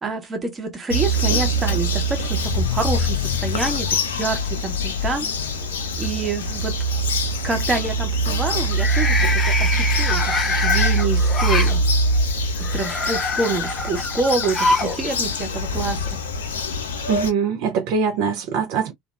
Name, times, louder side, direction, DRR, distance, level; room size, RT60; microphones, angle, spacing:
voice 1, 0.0-3.9 4.2-5.3 6.0-6.8 7.4-11.8 12.6-16.0, right 3 dB, 25° right, 0.9 m, -27 dB
Bird vocalization bird call bird song, 0.9-17.3, right 1 dB, 75° left, 0.4 m, -23 dB
sound 1, 5.1-5.8 6.2-6.5 8.6-11.7 12.6-15.0 15.3-15.4 16.5-16.6, left 3 dB, 30° left, 0.7 m, -25 dB
voice 2, 17.1-18.9, right 6 dB, 60° right, 0.5 m, -22 dB
2.8 x 2.2 x 2.2 m
figure-of-eight pair, 70°, 0 cm